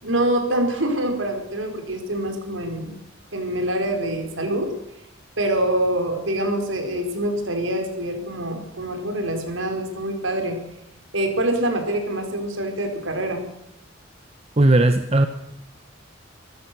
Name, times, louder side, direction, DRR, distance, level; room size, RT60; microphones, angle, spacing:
voice 1, 0.0-2.9 3.3-4.7 5.4-10.6 11.1-13.4, right 1 dB, 85° right, 5 dB, 4.7 m, -25 dB
voice 2, 14.6-15.3, right 2 dB, 35° right, 8 dB, 1.0 m, -16 dB
26.0 x 14.5 x 6.9 m, 0.82 s
head